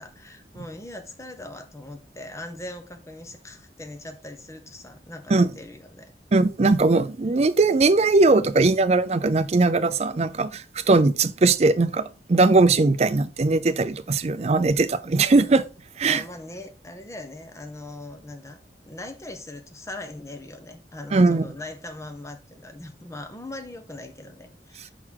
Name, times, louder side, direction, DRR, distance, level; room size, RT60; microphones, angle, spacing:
voice 1, 0.0-6.1 16.1-18.6 18.9-24.9, left 2 dB, 15° left, 0.9 m, -40 dB
voice 2, 6.3-15.6 16.0-16.2 21.1-21.4, right 3 dB, 35° right, 0.4 m, -20 dB
5.8 x 3.8 x 4.6 m
head